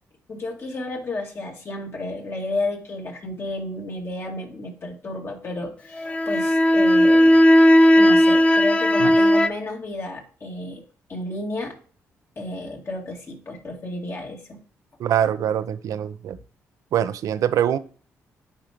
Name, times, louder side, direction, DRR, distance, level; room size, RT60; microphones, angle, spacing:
voice 1, 0.3-7.4 8.0-10.8 11.1-11.7 12.4-14.6, left 2 dB, 45° left, 1 dB, 2.2 m, -31 dB
sound 1, 6.0-9.5, equal, 20° left, 0.6 m, -15 dB
voice 2, 15.0-16.4 16.9-17.8, right 10 dB, 75° right, 14 dB, 0.6 m, -23 dB
8.7 x 4.8 x 2.9 m, 0.41 s
supercardioid pair, 65°, 6 cm